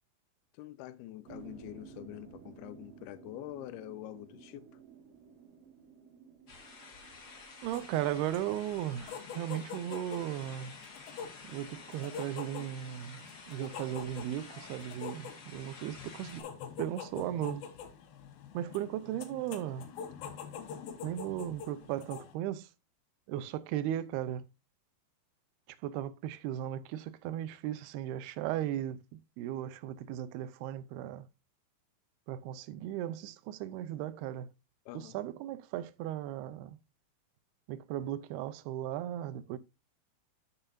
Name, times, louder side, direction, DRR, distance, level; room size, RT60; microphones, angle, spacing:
voice 1, 0.6-4.8 34.9-35.2, left 14 dB, 90° left, 2.5 m, -45 dB
sound 1, 1.2-7.8, right 7 dB, 70° right, 2.4 m, -54 dB
sound 2, 6.5-16.4, left 4 dB, 50° left, 1.2 m, -51 dB
voice 2, 7.6-10.8 11.4-16.5 16.8-17.7 18.5-19.9 21.0-22.7 23.3-24.5 25.7-31.3 32.3-34.5 34.9-36.8 37.7-39.6, right 12 dB, 90° right, 2.7 m, -36 dB
sound 3, 7.7-22.3, left 7 dB, 75° left, 2.8 m, -46 dB
12.0 x 5.8 x 2.6 m
omnidirectional pair, 4.4 m